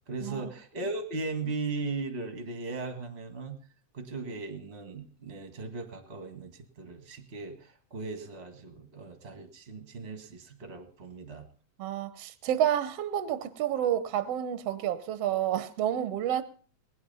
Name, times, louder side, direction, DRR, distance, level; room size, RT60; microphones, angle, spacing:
voice 1, 0.1-3.6 3.9-11.4, right 3 dB, 25° right, 1.5 m, -38 dB
voice 2, 11.8-16.4, right 10 dB, 65° right, 1.7 m, -29 dB
20.0 x 10.5 x 5.5 m
omnidirectional pair, 3.6 m